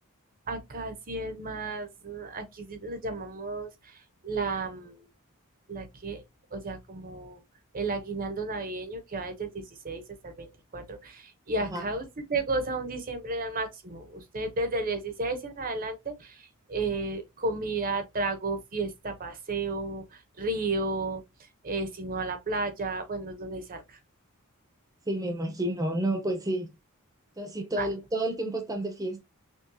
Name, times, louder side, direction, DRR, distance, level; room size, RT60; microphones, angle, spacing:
voice 1, 0.5-5.0 5.7-6.2 6.5-7.4 7.7-21.2 21.6-24.0 27.8-27.9, right 3 dB, 40° right, 0.8 m, -33 dB
voice 2, 25.1-26.7 27.4-29.2, right 1 dB, 15° right, 0.7 m, -30 dB
6.1 x 2.3 x 2.7 m
head